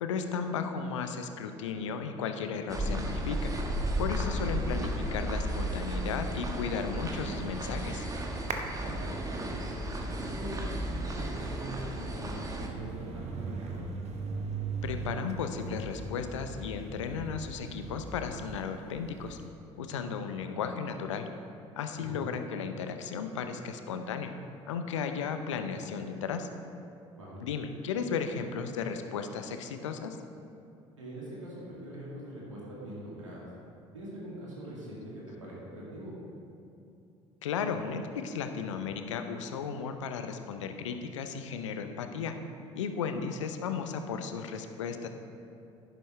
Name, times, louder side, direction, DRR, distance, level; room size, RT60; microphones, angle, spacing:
voice 1, 0.0-3.5 4.0-8.1 14.8-19.4 19.8-21.3 21.8-24.3 24.7-26.5 27.4-30.2 37.4-42.3 42.7-45.1, left 6 dB, 75° left, 7 dB, 0.6 m, -35 dB
sound 1, 2.7-12.7, right 1 dB, 20° right, 1.3 m, -34 dB
sound 2, 6.2-19.5, right 4 dB, 45° right, 1.0 m, -41 dB
voice 2, 8.8-9.6 10.1-13.8 21.9-22.2 27.1-27.4 31.0-33.5 33.9-36.1, equal, 85° right, -6 dB, 2.4 m, -43 dB
11.0 x 10.5 x 3.2 m, 2.6 s
figure-of-eight pair, 55°, 16 cm